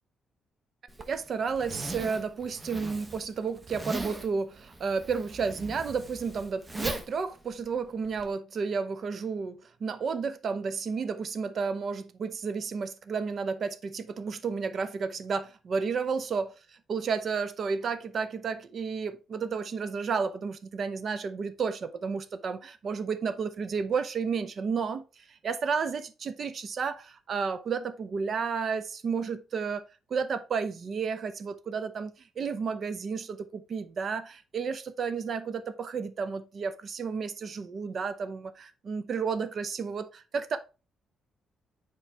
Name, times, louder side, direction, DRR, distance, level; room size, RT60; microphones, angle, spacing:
Zipper (clothing), 0.9-8.3, right 2 dB, 20° right, 1.0 m, -39 dB
voice 1, 1.1-16.5 16.9-25.0 25.3-40.6, right 5 dB, 50° right, 0.8 m, -32 dB
7.3 x 4.7 x 3.4 m
cardioid pair, 90°, 0 cm